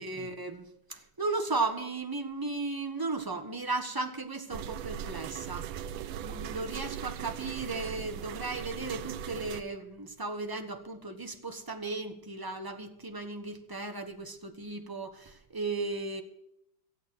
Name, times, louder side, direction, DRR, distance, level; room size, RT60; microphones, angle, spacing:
voice 1, 0.0-5.7 6.2-16.2, right 3 dB, 15° right, 5 dB, 1.0 m, -35 dB
sound 1, 4.5-9.6, right 9 dB, 80° right, 1.4 m, -39 dB
15.0 x 8.4 x 7.6 m, 0.81 s
omnidirectional pair, 2.2 m